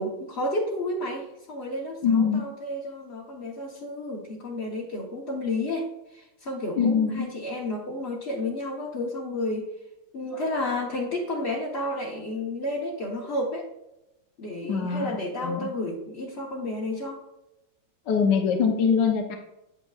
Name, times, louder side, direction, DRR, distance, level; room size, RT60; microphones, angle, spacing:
voice 1, 0.0-9.7 10.1-13.7 14.4-17.2, left 1 dB, 40° left, -3 dB, 1.1 m, -31 dB
voice 2, 2.0-2.4 6.8-7.3 14.7-15.7 18.1-19.4, left 6 dB, 70° left, 3 dB, 1.4 m, -23 dB
8.9 x 8.7 x 2.4 m, 0.91 s
omnidirectional pair, 2.0 m